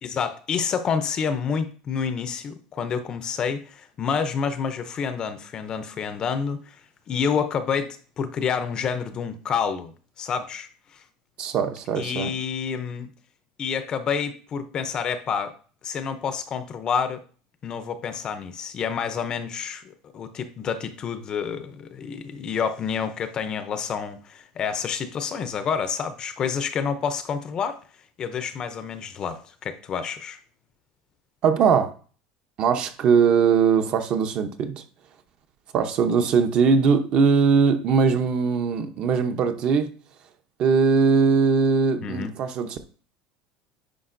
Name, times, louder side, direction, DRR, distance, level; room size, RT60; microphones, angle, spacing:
voice 1, 0.0-6.8 7.1-11.0 11.9-13.1 13.6-15.5 15.8-17.2 17.6-27.8 28.2-30.4 42.0-42.3, left 6 dB, 30° left, 0.5 m, -28 dB
voice 2, 11.4-12.3 31.4-31.9 32.6-34.8 35.7-39.9 40.6-42.9, right 5 dB, 40° right, 0.7 m, -20 dB
9.8 x 5.2 x 2.6 m
cardioid pair, 160°, 3 cm